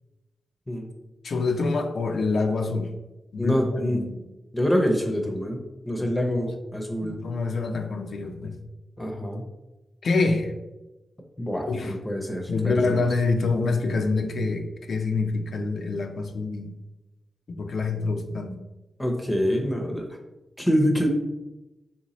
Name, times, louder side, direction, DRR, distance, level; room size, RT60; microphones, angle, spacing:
voice 1, 1.2-2.9 3.3-4.2 6.0-6.1 6.7-8.6 10.0-10.5 11.7-11.9 12.5-16.7 17.5-18.6, left 3 dB, 70° left, 5 dB, 0.4 m, -26 dB
voice 2, 3.4-4.0 4.5-7.2 9.0-9.4 11.4-13.1 19.0-20.0 20.6-21.1, equal, 20° left, 2 dB, 0.6 m, -26 dB
3.4 x 2.8 x 3.0 m, 1.0 s
cardioid pair, 50°, 0 cm